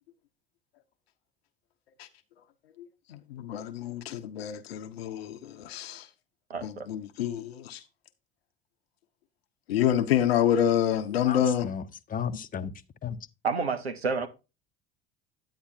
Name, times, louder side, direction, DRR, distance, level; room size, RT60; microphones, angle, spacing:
voice 1, 3.1-6.0 6.6-7.8 9.7-11.7, left 10 dB, 75° left, 0.8 m, -27 dB
voice 2, 6.5-6.9 13.4-14.3, right 4 dB, 90° right, 0.9 m, -29 dB
voice 3, 11.2-12.7 13.0-13.2, left 7 dB, 25° left, 0.8 m, -34 dB
9.8 x 8.7 x 2.7 m
figure-of-eight pair, 65°, 31 cm